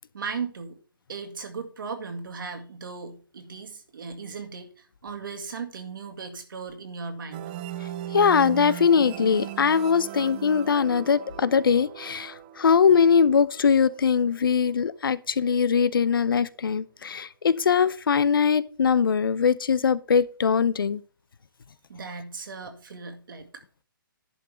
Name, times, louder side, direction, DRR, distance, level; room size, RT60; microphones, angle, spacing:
voice 1, 0.1-0.8 1.1-7.5 21.9-23.5, right 5 dB, 70° right, 2.1 m, -37 dB
sound 1, 7.3-14.7, right 12 dB, 25° right, 0.5 m, -39 dB
voice 2, 8.1-21.0, left 6 dB, 80° left, 0.7 m, -21 dB
11.0 x 3.9 x 6.9 m
hypercardioid pair, 160°, 12 cm